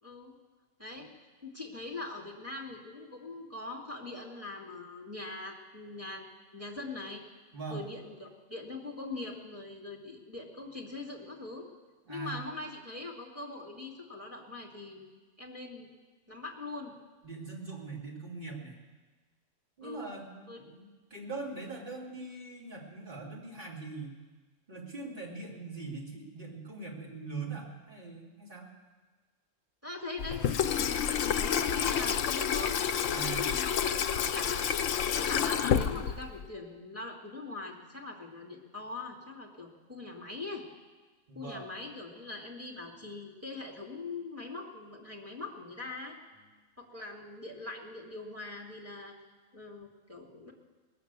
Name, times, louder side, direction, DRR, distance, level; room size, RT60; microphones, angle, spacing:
voice 1, 0.0-0.3 0.8-1.1 1.4-6.2 6.5-7.2 7.7-11.7 12.1-15.1 15.4-15.9 16.3-16.9 19.8-20.2 20.5-20.6 29.8-32.8 33.1-34.6 35.1-40.6 41.3-46.2 46.8-49.2 49.5-50.5, left 3 dB, 10° right, -2 dB, 2.2 m, -42 dB
voice 2, 7.5-7.8 12.0-12.4 17.2-18.8 19.8-24.2 24.7-28.7 33.1-33.5 41.3-41.7 46.4-46.5, right 3 dB, 45° right, -3 dB, 2.7 m, -42 dB
Water tap faucet / Sink (filling or washing), 30.2-36.5, left 8 dB, 80° left, 1.0 m, -29 dB
20.0 x 6.9 x 8.1 m, 1.3 s
omnidirectional pair, 1.3 m